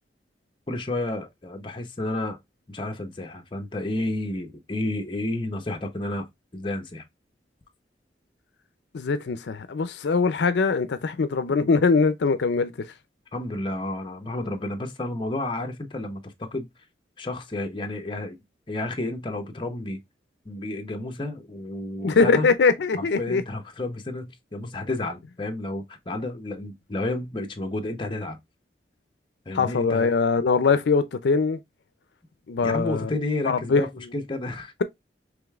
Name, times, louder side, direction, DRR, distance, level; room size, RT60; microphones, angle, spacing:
voice 1, 0.7-2.4 2.7-6.3 6.5-7.0 13.3-16.7 17.2-18.4 18.7-20.0 20.4-22.5 23.0-28.4 29.5-30.2 32.6-34.7, left 2 dB, 30° left, 0.8 m, -31 dB
voice 2, 8.9-12.7 22.0-23.4 29.5-31.6 32.5-33.1 33.4-33.8, left 4 dB, 80° left, 0.4 m, -22 dB
5.0 x 3.2 x 2.3 m
head